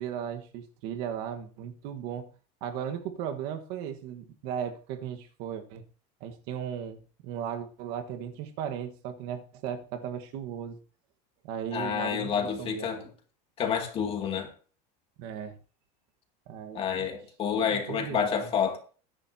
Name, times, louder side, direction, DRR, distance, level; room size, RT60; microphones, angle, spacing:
voice 1, 0.0-2.3 2.6-5.8 6.2-10.8 11.4-13.1 15.2-15.6 16.5-17.1 17.7-18.5, right 9 dB, 50° right, 1.5 m, -36 dB
voice 2, 11.7-13.1 13.6-14.5 16.7-18.8, left 7 dB, 25° left, 2.4 m, -29 dB
21.5 x 10.5 x 2.8 m
supercardioid pair, 160°, 21 cm